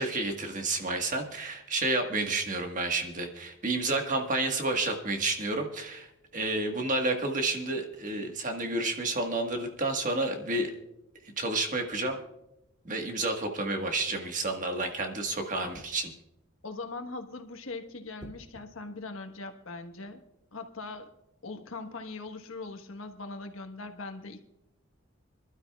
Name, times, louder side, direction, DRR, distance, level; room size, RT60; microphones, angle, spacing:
voice 1, 0.0-6.1 6.3-10.7 11.2-12.2 12.8-16.1, right 2 dB, 35° right, 4 dB, 1.5 m, -30 dB
voice 2, 16.6-20.2 20.5-21.1 21.4-24.4, left 3 dB, 75° left, 6 dB, 1.4 m, -41 dB
sound 1, 18.2-18.7 20.7-21.0, equal, 20° right, 2.7 m, -51 dB
26.0 x 12.5 x 2.4 m, 0.88 s
head